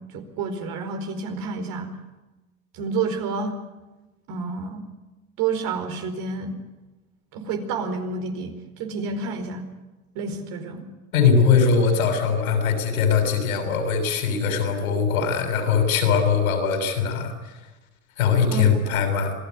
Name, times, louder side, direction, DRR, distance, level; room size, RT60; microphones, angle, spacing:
voice 1, 0.0-1.9 2.7-3.5 4.3-4.8 5.4-6.5 7.3-9.6 10.1-10.9 18.5-18.6, right 4 dB, 50° right, 6 dB, 4.7 m, -29 dB
voice 2, 11.1-17.3 18.2-19.3, left 6 dB, 75° left, 5 dB, 6.9 m, -21 dB
26.5 x 17.5 x 9.7 m, 1.1 s
hypercardioid pair, 90°, 42 cm